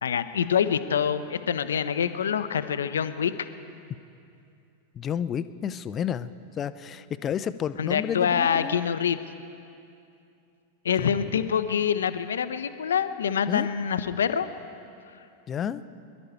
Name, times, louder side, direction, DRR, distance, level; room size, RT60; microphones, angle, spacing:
voice 1, 0.0-3.3 7.8-9.2 10.8-14.5, left 8 dB, 65° left, 11 dB, 0.6 m, -25 dB
voice 2, 4.9-8.8 11.0-11.4 13.5-13.7 15.5-15.8, left 8 dB, 25° left, 14 dB, 0.5 m, -31 dB
22.5 x 12.0 x 4.4 m, 2.6 s
figure-of-eight pair, 90°, 0 cm